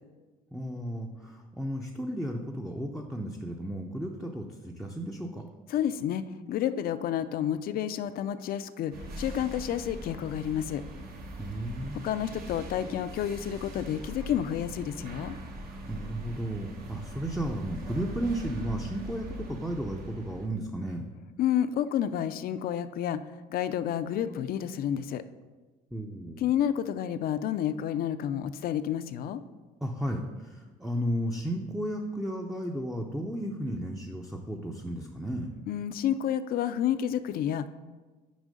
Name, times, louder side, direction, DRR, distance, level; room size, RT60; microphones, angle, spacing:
voice 1, 0.5-5.5 11.4-12.0 15.7-21.0 25.9-26.5 29.8-35.5, right 1 dB, ahead, 1 dB, 0.5 m, -34 dB
voice 2, 5.7-6.2 6.5-10.8 12.0-15.4 21.4-23.2 23.5-25.2 26.4-29.4 35.7-37.7, left 10 dB, 60° left, 13 dB, 0.4 m, -30 dB
sound 1, 8.9-20.5, equal, 60° right, 1.2 m, -41 dB
6.2 x 4.9 x 5.2 m, 1.3 s
cardioid pair, 110°, 17 cm